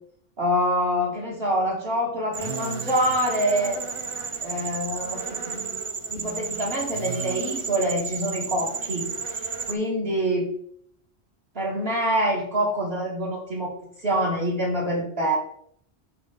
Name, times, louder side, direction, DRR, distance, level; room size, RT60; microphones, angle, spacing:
voice 1, 0.4-3.8 4.4-5.7 6.1-9.0 9.3-9.4 9.7-10.5 11.6-13.7 14.0-15.4, equal, 60° right, -6 dB, 1.9 m, -25 dB
sound 1, 2.3-9.7, right 5 dB, 40° right, 0.5 m, -32 dB
7.0 x 5.5 x 3.8 m, 0.66 s
omnidirectional pair, 1.1 m